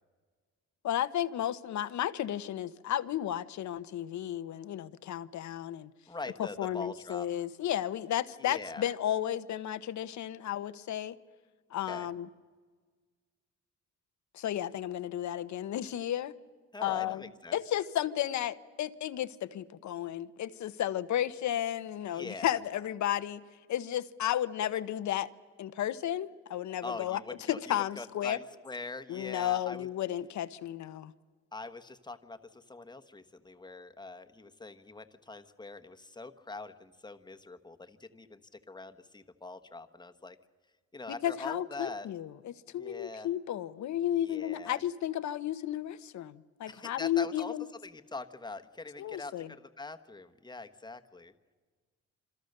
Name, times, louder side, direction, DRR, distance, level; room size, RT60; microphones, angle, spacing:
voice 1, 0.8-5.9 6.4-11.1 11.7-12.3 14.3-16.3 16.8-23.4 23.7-25.3 25.6-27.2 27.5-28.4 29.1-31.1 41.2-47.7 49.0-49.5, left 11 dB, 70° left, 1.0 m, -33 dB
voice 2, 6.1-7.3 8.4-8.8 11.9-12.1 16.7-17.6 22.1-22.6 26.8-29.9 31.5-40.4 40.9-42.1 42.7-43.3 44.2-44.8 46.7-47.5 47.8-51.3, left 3 dB, 15° left, 1.3 m, -43 dB
27.0 x 25.5 x 6.7 m
cardioid pair, 90°, 30 cm